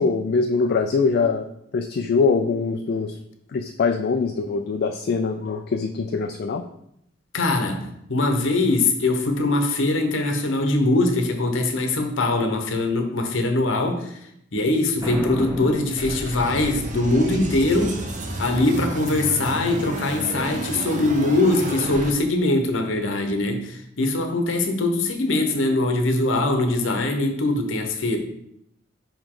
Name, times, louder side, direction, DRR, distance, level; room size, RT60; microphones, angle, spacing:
voice 1, 0.0-1.5 1.7-3.1 3.5-6.6, left 4 dB, 55° left, 5 dB, 0.4 m, -23 dB
voice 2, 7.3-14.2 14.5-18.0 18.4-28.2, left 2 dB, 70° left, 5 dB, 0.9 m, -22 dB
Boom, 15.0-16.8, left 1 dB, 15° right, 1.3 m, -31 dB
sound 1, 16.0-22.1, right 2 dB, 40° right, 0.8 m, -31 dB
5.2 x 4.9 x 3.8 m, 0.76 s
head